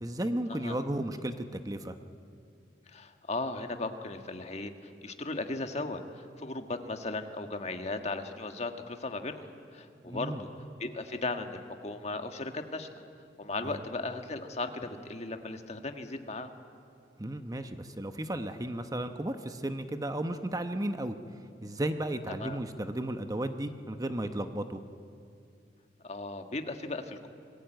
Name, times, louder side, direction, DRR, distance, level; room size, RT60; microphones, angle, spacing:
voice 1, 0.0-2.0 10.0-10.4 13.6-13.8 17.2-21.2 21.6-24.8, right 1 dB, 20° right, 8 dB, 0.9 m, -34 dB
voice 2, 2.9-10.5 10.8-12.9 13.4-16.5 22.4-22.6 26.0-27.3, left 2 dB, 35° left, 6 dB, 1.6 m, -37 dB
26.0 x 21.5 x 9.1 m, 2.4 s
head